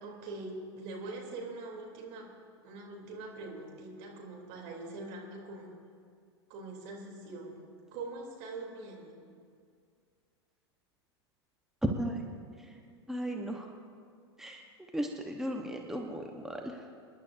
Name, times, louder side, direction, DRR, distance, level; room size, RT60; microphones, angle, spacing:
voice 1, 0.0-2.3 2.6-5.7 6.5-7.6 7.9-9.2, right 2 dB, 55° right, 0 dB, 3.3 m, -43 dB
voice 2, 11.8-12.2 13.1-13.7 14.4-14.6 14.9-16.8, right 1 dB, 5° right, 2 dB, 1.0 m, -35 dB
27.0 x 11.0 x 2.7 m, 2.2 s
hypercardioid pair, 90°, 14 cm